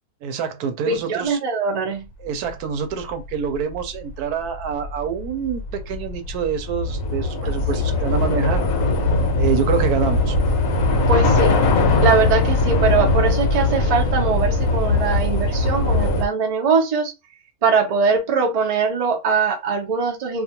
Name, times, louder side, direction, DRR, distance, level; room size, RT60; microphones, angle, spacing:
voice 1, 0.2-1.4 2.2-8.6 9.3-10.4, right 7 dB, 85° right, 1.1 m, -26 dB
voice 2, 0.9-2.0 7.4-7.8 11.1-11.6 12.0-17.1 17.6-20.4, right 5 dB, 45° right, 0.5 m, -21 dB
Train / Subway metro underground, 2.9-3.0 3.3-16.3, left 2 dB, 70° left, 1.0 m, -20 dB
2.6 x 2.3 x 2.8 m
omnidirectional pair, 1.6 m